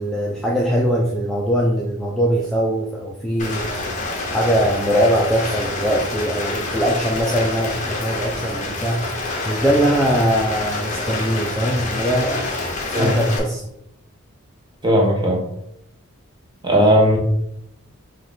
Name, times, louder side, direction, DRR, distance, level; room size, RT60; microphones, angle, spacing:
voice 1, 0.0-3.7 4.3-9.1 9.4-12.5 13.0-13.6, equal, ahead, -3 dB, 0.3 m, -21 dB
Rain, 3.4-13.4, left 2 dB, 35° left, 0.8 m, -27 dB
voice 2, 14.8-15.4 16.6-17.2, equal, 20° right, 0 dB, 0.8 m, -16 dB
5.3 x 2.3 x 3.6 m, 0.78 s
head